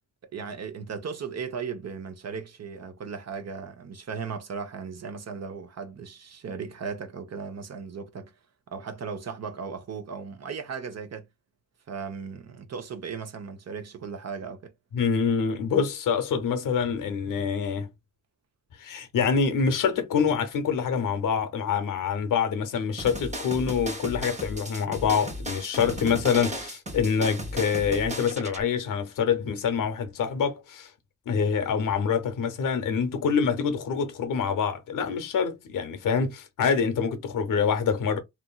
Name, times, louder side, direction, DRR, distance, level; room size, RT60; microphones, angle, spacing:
voice 1, 0.3-8.3 8.7-11.3 11.9-14.7, right 5 dB, 55° right, 0.7 m, -36 dB
voice 2, 14.9-17.9 18.8-30.9 31.3-38.2, left 6 dB, 85° left, 0.7 m, -26 dB
sound 1, 23.0-28.6, equal, 20° right, 1.0 m, -35 dB
2.9 x 2.5 x 2.2 m
cardioid pair, 60°, 32 cm